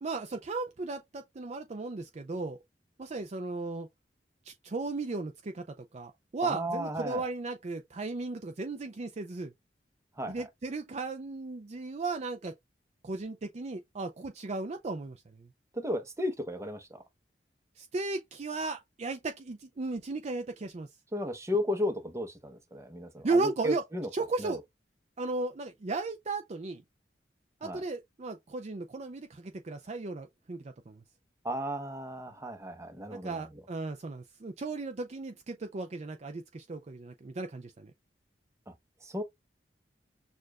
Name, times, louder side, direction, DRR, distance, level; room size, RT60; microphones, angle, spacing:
voice 1, 0.0-2.6 3.0-3.9 4.5-9.5 10.3-12.5 13.0-15.5 17.8-20.9 23.2-23.8 24.1-24.6 25.2-26.8 27.6-31.0 33.1-37.9, right 3 dB, 40° right, 0.5 m, -35 dB
voice 2, 6.4-7.2 10.2-10.5 15.7-17.0 21.1-24.1 24.4-24.5 27.6-27.8 31.4-33.6 38.7-38.8 39.0-39.2, left 1 dB, 15° right, 0.8 m, -34 dB
6.6 x 2.5 x 2.3 m
head